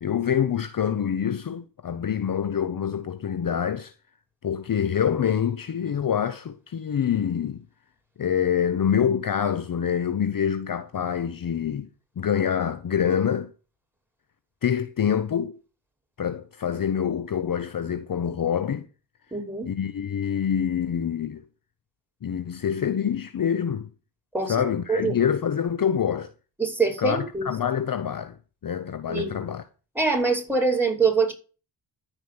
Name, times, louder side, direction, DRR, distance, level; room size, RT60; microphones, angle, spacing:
voice 1, 0.0-3.9 4.4-7.6 8.2-11.9 12.2-13.5 14.6-15.6 16.2-18.9 19.6-21.4 22.2-23.9 24.5-26.3 27.0-29.6, left 8 dB, 45° left, 0.9 m, -26 dB
voice 2, 19.3-19.7 24.3-25.2 26.6-27.5 29.1-29.5 29.9-31.3, right 4 dB, 5° right, 5.9 m, -24 dB
13.5 x 5.2 x 7.9 m
cardioid pair, 65°, 45 cm